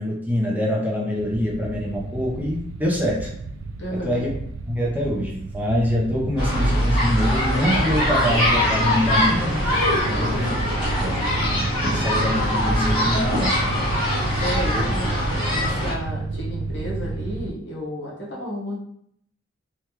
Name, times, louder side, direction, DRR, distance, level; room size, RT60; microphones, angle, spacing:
voice 1, 0.0-3.3 3.9-4.3 4.7-9.6 10.2-10.6 11.0-13.5 14.5-14.9, equal, 10° right, -3 dB, 0.6 m, -25 dB
sound 1, 1.2-17.5, right 3 dB, 90° right, 0.3 m, -31 dB
voice 2, 3.8-4.2 10.1-10.4 14.4-18.8, equal, 65° left, -4 dB, 1.0 m, -32 dB
sound 2, 6.4-15.9, equal, 25° left, 1.4 m, -22 dB
3.3 x 2.3 x 2.9 m, 0.70 s
head